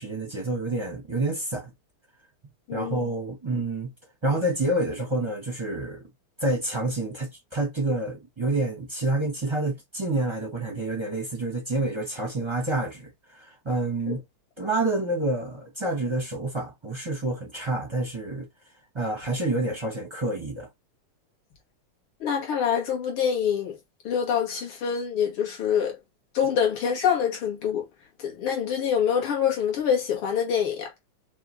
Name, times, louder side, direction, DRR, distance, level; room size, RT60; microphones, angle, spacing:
voice 1, 0.0-1.7 2.7-3.9 4.2-6.0 6.4-14.2 14.6-18.5 18.9-20.7, right 2 dB, 35° right, 0.4 m, -28 dB
voice 2, 2.7-3.0 14.1-14.2 22.2-23.7 24.0-26.0 26.3-27.8 28.2-30.9, left 8 dB, 75° left, 2.4 m, -25 dB
5.5 x 2.4 x 3.2 m
omnidirectional pair, 2.4 m